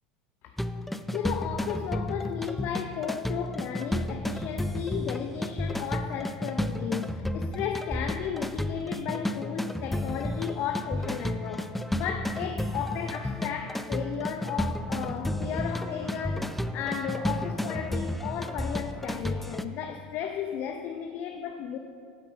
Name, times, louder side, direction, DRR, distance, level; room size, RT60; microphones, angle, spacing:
sound 1, 0.6-19.6, left 1 dB, 5° left, 0.5 m, -32 dB
voice 1, 0.9-21.8, left 8 dB, 55° left, 0.6 m, -34 dB
10.0 x 6.8 x 7.2 m
hypercardioid pair, 90°, 4 cm